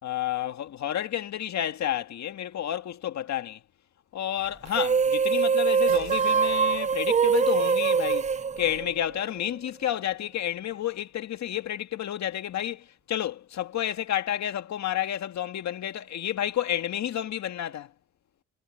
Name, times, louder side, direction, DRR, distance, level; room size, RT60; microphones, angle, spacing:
voice 1, 0.0-3.6 4.1-8.3 8.6-17.9, left 11 dB, 65° left, 1.9 m, -30 dB
sound 1, 4.7-9.4, right 6 dB, 25° right, 0.4 m, -23 dB
sound 2, 5.9-10.6, right 6 dB, 45° right, 3.4 m, -48 dB
cardioid pair, 90°, 30 cm